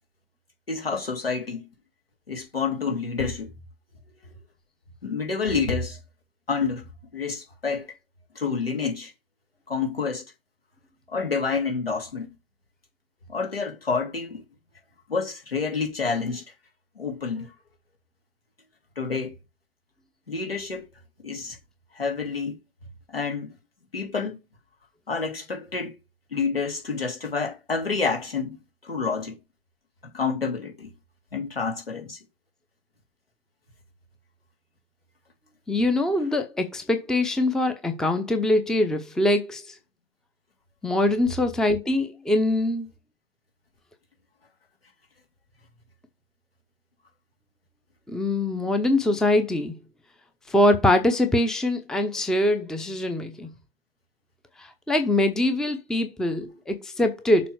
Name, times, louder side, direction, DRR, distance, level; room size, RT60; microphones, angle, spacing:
voice 1, 0.7-1.7 2.3-3.5 5.0-6.0 6.5-6.8 7.1-7.9 8.3-9.1 9.7-10.2 11.1-12.3 13.3-14.4 15.1-16.4 17.0-17.5 19.0-19.3 20.3-20.9 21.2-21.6 21.9-22.6 23.1-23.5 23.9-24.4 25.1-26.0 26.3-28.6 28.8-29.4 30.1-30.9 31.3-32.2, left 5 dB, 80° left, 2.6 m, -28 dB
voice 2, 35.7-39.8 40.8-42.9 48.1-49.8 50.5-53.5 54.6-57.5, left 1 dB, ahead, 0.6 m, -23 dB
6.9 x 3.7 x 6.3 m
figure-of-eight pair, 100°, 29 cm